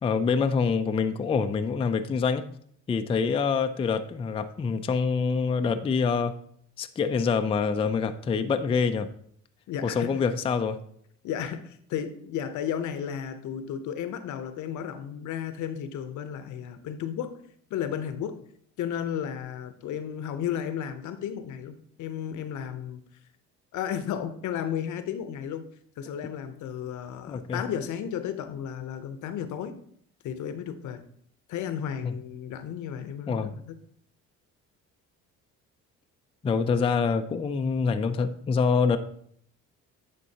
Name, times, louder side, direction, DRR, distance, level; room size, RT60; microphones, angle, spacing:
voice 1, 0.0-2.4 2.9-6.3 6.8-9.1 9.8-10.8 27.3-27.6 32.0-32.1 33.3-33.5 36.4-39.0, left 5 dB, 20° left, 8 dB, 0.3 m, -26 dB
voice 2, 9.7-10.3 11.2-17.4 17.7-18.4 18.8-23.0 23.7-25.7 26.0-29.8 30.2-31.0 31.5-33.8, left 9 dB, 65° left, 10 dB, 0.7 m, -33 dB
9.9 x 3.8 x 2.8 m, 0.65 s
supercardioid pair, 85°, 32 cm